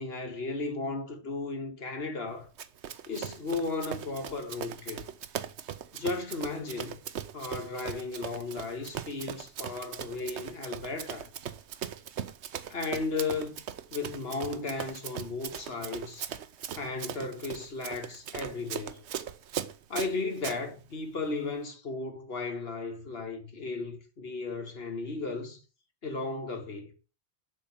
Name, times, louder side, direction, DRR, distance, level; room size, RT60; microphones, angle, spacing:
voice 1, 0.0-2.5 3.1-5.1 5.9-7.0 7.3-11.3 12.7-13.6 13.9-16.3 16.8-19.0 19.9-25.6 26.0-26.9, left 3 dB, 60° left, 2.0 m, -35 dB
Run, 2.6-20.6, right 9 dB, 80° right, 1.0 m, -39 dB
7.4 x 6.7 x 7.1 m
omnidirectional pair, 1.1 m